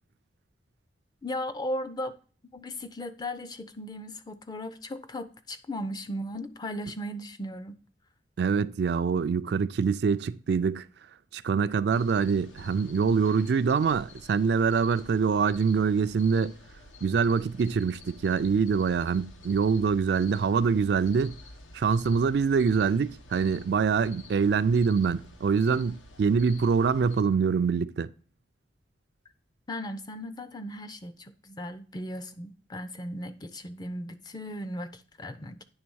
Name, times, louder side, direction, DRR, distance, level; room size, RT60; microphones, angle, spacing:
voice 1, 1.2-2.2 2.5-7.8 29.7-35.6, left 1 dB, 20° left, 0.4 m, -37 dB
voice 2, 8.4-10.9 11.3-16.5 17.0-21.4 21.7-28.1, right 5 dB, 60° right, 0.3 m, -25 dB
sound 1, 11.9-27.2, left 2 dB, 85° left, 0.9 m, -50 dB
9.5 x 3.4 x 6.1 m
head